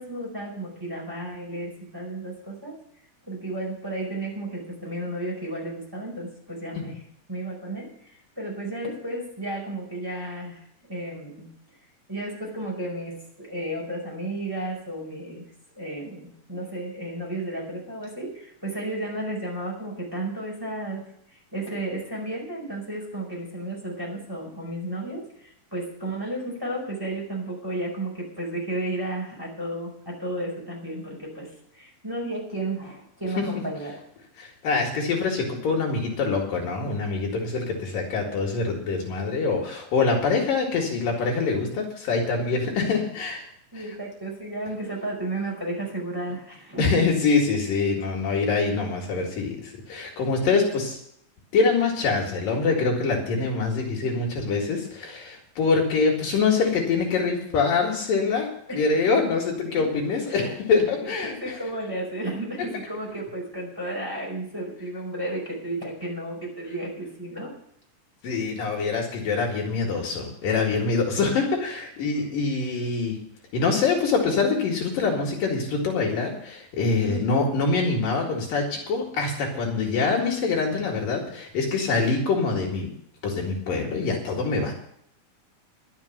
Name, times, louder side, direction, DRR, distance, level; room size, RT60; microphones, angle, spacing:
voice 1, 0.0-2.8 3.3-7.0 7.3-10.6 10.9-11.5 12.1-15.5 15.7-34.0 43.7-47.0 58.7-59.2 59.6-59.9 60.3-60.6 61.0-67.5 68.2-68.5 72.1-72.3 76.9-77.2, right 1 dB, 5° right, -3 dB, 4.7 m, -33 dB
voice 2, 34.4-43.5 46.8-51.0 51.5-58.5 58.7-61.6 68.2-73.2 73.5-82.9 83.2-84.7, left 4 dB, 70° left, 0 dB, 3.8 m, -24 dB
11.5 x 7.3 x 9.3 m, 0.70 s
omnidirectional pair, 4.2 m